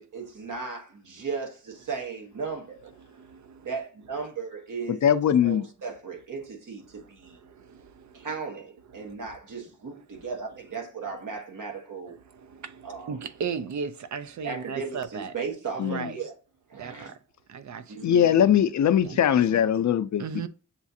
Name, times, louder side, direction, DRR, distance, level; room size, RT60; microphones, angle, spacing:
voice 1, 0.0-2.9 3.6-5.0 5.4-7.4 8.1-12.2 12.8-13.1 14.4-16.3 16.7-17.1 17.9-18.3, right 5 dB, 80° right, 1.3 m, -36 dB
voice 2, 3.0-3.7 6.9-8.3 8.9-9.1 9.9-10.3 11.0-11.1 12.1-15.3 15.7-16.2 16.7-17.2 17.5-18.0 19.0-19.4 20.2-20.5, right 6 dB, 65° right, 0.5 m, -37 dB
voice 3, 4.9-5.7 15.8-16.2 18.0-20.5, left 9 dB, 65° left, 0.5 m, -21 dB
7.2 x 2.4 x 2.7 m
wide cardioid pair, 90°, 31 cm